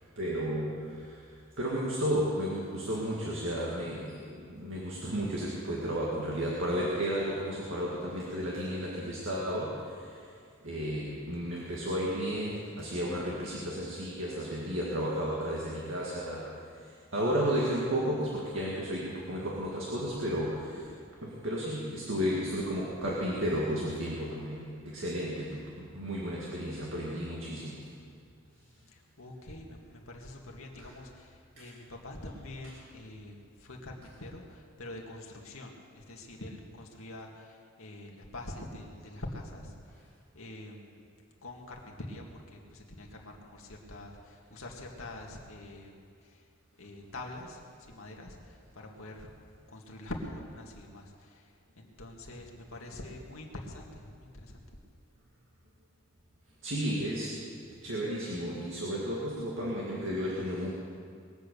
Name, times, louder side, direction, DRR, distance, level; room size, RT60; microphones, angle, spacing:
voice 1, 0.2-1.3 1.6-10.4 10.6-20.9 21.2-27.9 30.8-30.9 31.6-31.7 56.6-57.4 57.7-60.7, equal, 65° right, -5 dB, 2.1 m, -33 dB
voice 2, 28.9-40.1 40.3-41.1 41.4-46.5 46.8-49.3 49.7-54.6, left 1 dB, 85° left, 0 dB, 2.1 m, -45 dB
21.0 x 8.4 x 6.9 m, 2.2 s
head